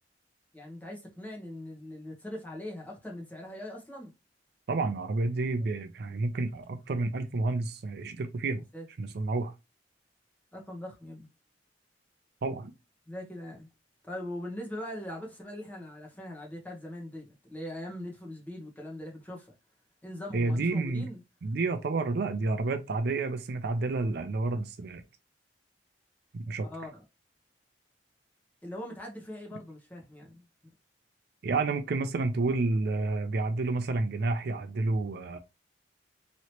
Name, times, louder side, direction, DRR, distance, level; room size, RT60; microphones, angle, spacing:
voice 1, 0.5-4.1 8.7-8.8 10.5-11.3 13.1-13.7 14.0-19.5 20.0-21.2 26.7-27.0 28.6-30.4, left 1 dB, 10° left, 1.0 m, -41 dB
voice 2, 4.7-8.6 9.0-9.5 12.4-12.7 20.3-21.1 21.4-25.0 26.3-26.7 31.4-35.4, right 3 dB, 60° right, 0.4 m, -30 dB
3.1 x 2.8 x 2.9 m
head